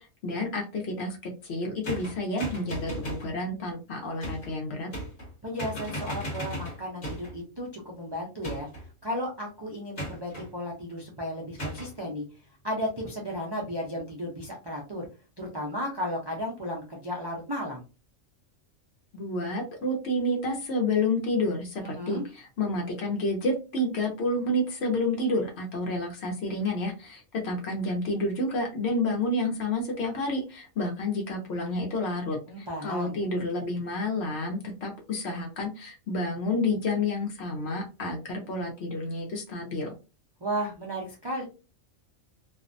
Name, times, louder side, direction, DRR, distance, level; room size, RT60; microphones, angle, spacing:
voice 1, 0.2-4.9 19.1-39.9, left 2 dB, 60° left, 1 dB, 0.9 m, -29 dB
sound 1, 1.8-3.3 4.2-4.5 4.9-5.3 5.6-7.4 8.4-8.9 10.0-10.5 11.6-11.9, equal, 45° left, 1.2 m, -36 dB
voice 2, 5.4-8.7 9.0-12.3 12.6-15.1 15.4-17.8 21.8-22.2 32.5-33.2 40.4-41.4, equal, 40° right, -3 dB, 0.3 m, -34 dB
2.5 x 2.1 x 2.5 m, 0.31 s
omnidirectional pair, 1.3 m